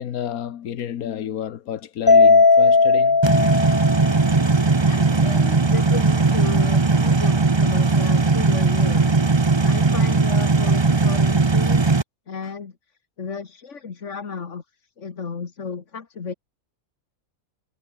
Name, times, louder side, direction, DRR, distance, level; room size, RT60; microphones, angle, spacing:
voice 1, 0.0-3.2, left 10 dB, 90° left, 1.5 m, -30 dB
Mallet percussion, 2.1-4.5, left 4 dB, 35° left, 0.3 m, -16 dB
sound 1, 3.2-12.0, right 3 dB, 20° right, 0.8 m, -18 dB
voice 2, 4.9-11.9 12.3-12.8 13.2-16.3, left 5 dB, 55° left, 2.0 m, -34 dB
omnidirectional pair, 1.5 m